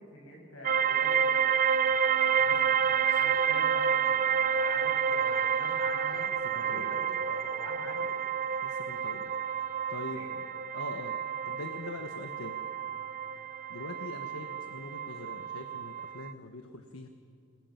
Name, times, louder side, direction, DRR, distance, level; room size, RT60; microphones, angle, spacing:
voice 1, 0.0-1.4 1.8-2.6 3.0-8.1 10.1-10.4 11.1-11.2, left 1 dB, 70° left, 0 dB, 7.0 m, -46 dB
sound 1, 0.6-16.3, right 7 dB, 40° right, 0.6 m, -29 dB
sound 2, 2.3-8.0, right 1 dB, 90° right, 3.9 m, -51 dB
voice 2, 6.4-7.0 8.6-9.3 9.9-10.4 10.7-12.6 13.7-17.1, left 2 dB, 85° left, 6 dB, 1.3 m, -43 dB
28.0 x 21.0 x 5.9 m, 2.4 s
head